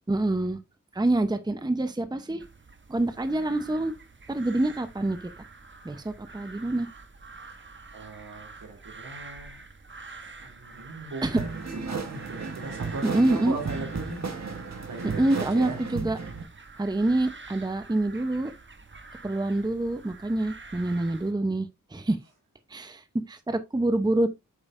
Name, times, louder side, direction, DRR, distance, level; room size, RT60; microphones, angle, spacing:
voice 1, 0.1-0.6 0.9-2.5 2.9-3.9 4.3-5.2 5.8-6.9 11.2-11.4 13.0-13.6 15.2-16.2 16.8-18.5 19.2-22.2 22.7-24.3, right 2 dB, 15° right, 0.7 m, -26 dB
sound 1, 2.4-21.3, right 3 dB, 35° right, 1.0 m, -47 dB
voice 2, 7.9-9.6 10.2-14.2 14.9-15.8, right 3 dB, 80° right, 2.9 m, -38 dB
sound 2, 11.4-16.4, right 4 dB, 55° right, 1.3 m, -34 dB
8.2 x 5.4 x 2.5 m
wide cardioid pair, 75°, 32 cm